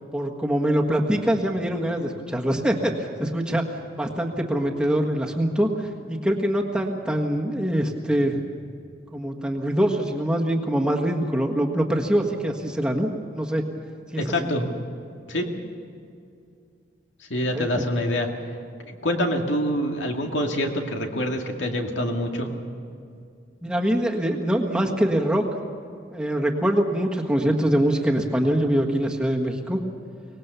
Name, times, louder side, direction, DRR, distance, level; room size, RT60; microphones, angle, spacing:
voice 1, 0.1-3.6 4.0-8.4 9.1-13.1 13.3-13.6 14.1-14.3 17.5-17.6 23.6-25.5 26.1-29.8, right 1 dB, 5° right, 0 dB, 1.5 m, -24 dB
voice 2, 14.2-14.7 15.3-15.5 17.3-18.3 18.9-22.5, equal, 80° left, 3 dB, 2.3 m, -25 dB
24.5 x 19.0 x 6.9 m, 2.5 s
head